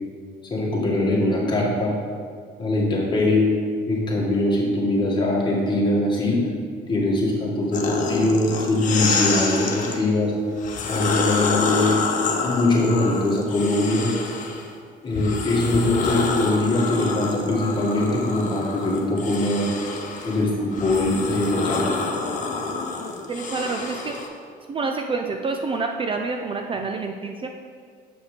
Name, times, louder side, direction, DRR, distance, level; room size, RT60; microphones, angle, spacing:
voice 1, 0.5-2.0 2.6-3.5 3.9-6.4 6.9-10.3 10.9-12.0 12.4-14.1 15.0-19.7 20.2-21.8, left 1 dB, 25° left, -4 dB, 2.0 m, -22 dB
sound 1, 7.7-10.0 10.6-14.7 15.1-24.3, left 4 dB, 50° left, 1.1 m, -27 dB
voice 2, 23.3-24.2 24.7-27.5, right 4 dB, 30° right, 4 dB, 0.5 m, -27 dB
7.4 x 5.6 x 5.1 m, 2.1 s
cardioid pair, 110°, 17 cm